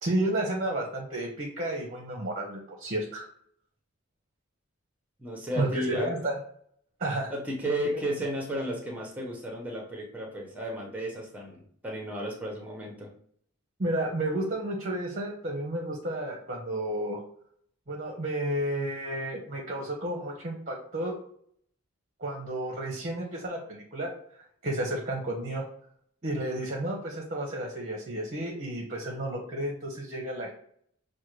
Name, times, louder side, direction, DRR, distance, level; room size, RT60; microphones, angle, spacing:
voice 1, 0.0-3.3 5.5-6.4 7.0-7.3 7.9-8.0 13.8-17.2 17.9-21.1 22.2-24.1 24.6-25.6 26.2-30.5, right 1 dB, 40° right, 0 dB, 0.8 m, -31 dB
voice 2, 5.2-6.1 7.3-13.1, right 1 dB, 5° right, -1 dB, 1.0 m, -33 dB
6.1 x 2.2 x 3.1 m, 0.63 s
head